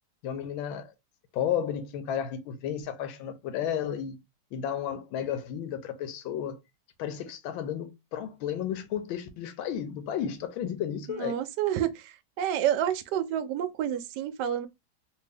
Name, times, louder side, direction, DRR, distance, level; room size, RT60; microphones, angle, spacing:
voice 1, 0.2-0.9 1.3-4.2 4.5-6.6 7.0-11.4, left 9 dB, 85° left, 1.4 m, -33 dB
voice 2, 11.1-14.7, right 10 dB, 75° right, 1.0 m, -29 dB
3.4 x 2.6 x 3.3 m
omnidirectional pair, 2.2 m